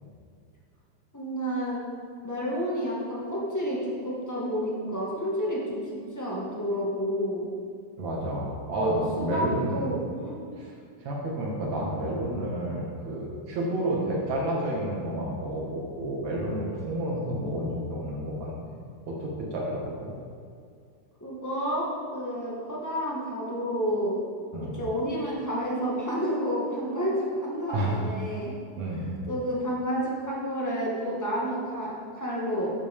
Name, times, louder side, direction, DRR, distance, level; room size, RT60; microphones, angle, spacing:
voice 1, 1.1-1.8 2.2-5.8 6.1-7.5 8.7-9.4 9.7-10.4 21.2-21.9 22.1-24.2 24.7-28.5 29.3-32.7, equal, 10° left, -5 dB, 0.7 m, -30 dB
voice 2, 8.0-9.9 10.6-10.7 11.0-18.5 19.1-20.1 24.5-24.7 27.7-28.0 28.8-29.1, right 1 dB, 65° right, -3 dB, 3.1 m, -30 dB
12.0 x 8.3 x 3.7 m, 2.3 s
omnidirectional pair, 3.6 m